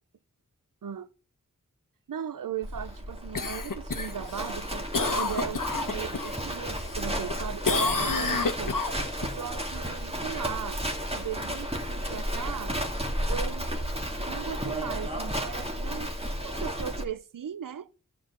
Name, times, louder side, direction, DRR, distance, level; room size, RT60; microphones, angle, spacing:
voice 1, 2.1-4.9 5.2-8.8 9.3-10.8 11.1-12.8 13.3-13.8 14.2-16.1 16.4-17.9, right 8 dB, 85° right, 0.6 m, -37 dB
Livestock farm animals working animals, 2.6-17.0, equal, 20° right, 2.0 m, -33 dB
Cough, 3.3-6.3 6.7-7.3 7.6-9.3 13.8-13.9, left 3 dB, 80° left, 1.2 m, -29 dB
12.0 x 5.4 x 6.9 m
wide cardioid pair, 45°, 32 cm